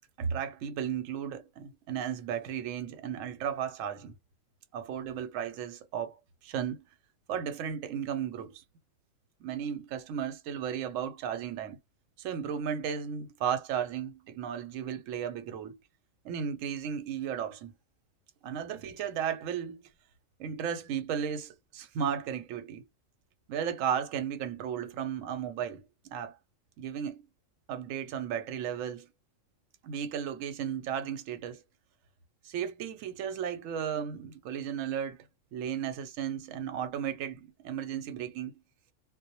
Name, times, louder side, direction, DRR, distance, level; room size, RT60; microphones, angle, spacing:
voice 1, 0.2-4.2 4.7-6.8 7.3-8.6 9.4-11.8 12.2-15.8 16.2-17.7 18.4-19.9 20.4-22.9 23.5-26.4 26.8-27.3 27.7-29.1 29.8-31.6 32.4-35.3 35.5-38.5, right 8 dB, 80° right, 0.9 m, -35 dB
2.1 x 2.1 x 2.8 m
omnidirectional pair, 1.3 m